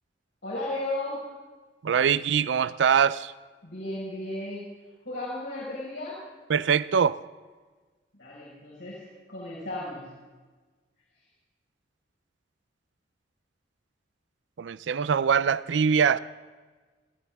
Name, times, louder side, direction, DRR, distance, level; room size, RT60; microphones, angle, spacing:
voice 1, 0.4-1.3 3.6-4.7 5.0-6.2 8.2-10.1, left 1 dB, 90° left, 5.0 m, -35 dB
voice 2, 1.8-3.3 6.5-7.2 14.6-16.2, right 7 dB, 80° right, 0.4 m, -23 dB
20.5 x 15.0 x 3.6 m
head